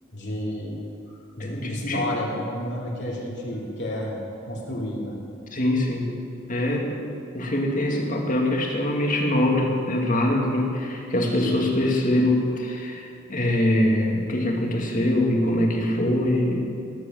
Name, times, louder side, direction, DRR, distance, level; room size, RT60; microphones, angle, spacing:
voice 1, 0.1-0.8 1.1-4.2 4.4-5.2, left 1 dB, 60° left, -3 dB, 2.9 m, -31 dB
voice 2, 1.4-2.1 5.5-6.1 6.5-7.0 7.3-16.7, left 1 dB, 40° left, 0 dB, 2.2 m, -23 dB
18.5 x 8.2 x 7.6 m, 2.5 s
head